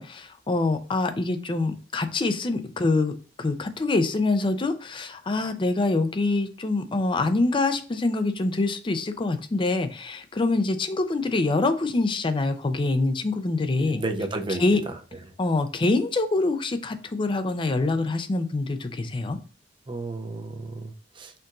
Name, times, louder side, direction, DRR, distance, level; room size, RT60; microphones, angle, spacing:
voice 1, 0.0-3.1 3.4-14.0 14.5-14.8 15.4-19.4, left 2 dB, 25° left, 9 dB, 0.4 m, -25 dB
voice 2, 13.8-15.0 19.9-21.3, right 2 dB, 25° right, 5 dB, 0.6 m, -32 dB
4.5 x 2.6 x 3.6 m, 0.40 s
head